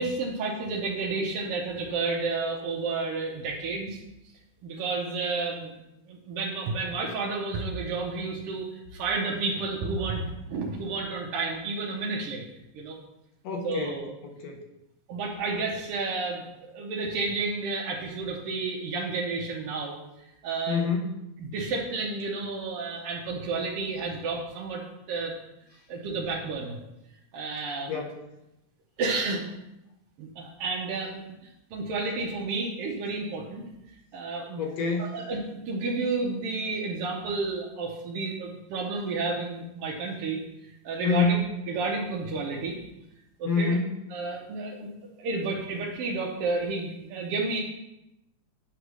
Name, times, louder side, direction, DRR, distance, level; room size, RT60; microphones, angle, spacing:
voice 1, 0.0-4.0 4.6-5.7 6.1-12.4 12.7-13.0 13.6-14.1 15.1-20.0 20.4-20.8 21.4-25.3 25.9-26.8 27.3-28.0 29.0-29.4 30.2-31.2 31.7-33.6 34.1-34.6 35.0-40.4 40.8-41.4 41.7-42.8 43.4-43.7 44.1-47.6, right 3 dB, 70° right, -2 dB, 1.5 m, -31 dB
voice 2, 13.4-14.0 14.2-14.6 20.7-21.1 27.9-28.2 34.6-35.2 41.0-41.5 43.5-44.0, left 4 dB, 70° left, 2 dB, 1.9 m, -27 dB
8.1 x 3.2 x 6.0 m, 0.90 s
omnidirectional pair, 3.4 m